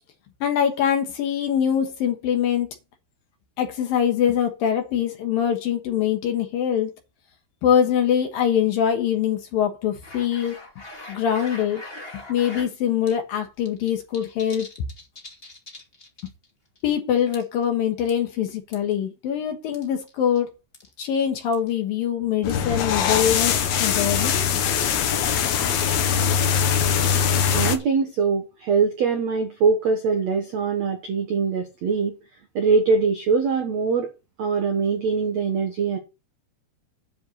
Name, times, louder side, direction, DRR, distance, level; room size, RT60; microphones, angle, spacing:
voice 1, 0.4-2.7 3.6-6.9 7.6-10.6 11.1-11.8 12.1-14.7 16.8-20.5 21.0-24.4, left 9 dB, 65° left, 2.6 m, -23 dB
sound 1, 10.0-12.7 13.1-13.2 13.4-16.5 16.8-16.9 17.3-17.6 18.1-18.9 19.7-20.4 20.7-20.9 21.5-21.7 22.5-22.6 23.0-23.1 23.4-23.6 23.9-24.0 24.2-24.3 24.9-25.0 25.2-25.3 25.7-25.9 26.4-28.0, left 2 dB, 25° left, 1.3 m, -42 dB
sound 2, 22.4-27.8, left 7 dB, 85° left, 1.6 m, -22 dB
voice 2, 27.5-32.1 32.5-34.1 34.4-36.0, right 5 dB, 70° right, 1.6 m, -22 dB
10.0 x 4.7 x 8.1 m
omnidirectional pair, 5.2 m